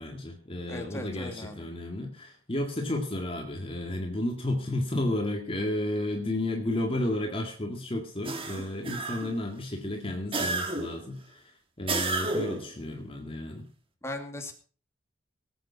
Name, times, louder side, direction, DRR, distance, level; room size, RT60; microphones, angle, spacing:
voice 1, 0.0-11.4 11.8-13.7, left 1 dB, 30° left, 3 dB, 2.1 m, -32 dB
voice 2, 0.7-1.7 14.0-14.5, left 1 dB, 15° left, 3 dB, 2.4 m, -38 dB
sound 1, 8.2-9.5 10.3-11.1 11.9-12.7, right 3 dB, 30° right, 1.9 m, -31 dB
19.0 x 8.5 x 5.7 m, 0.39 s
head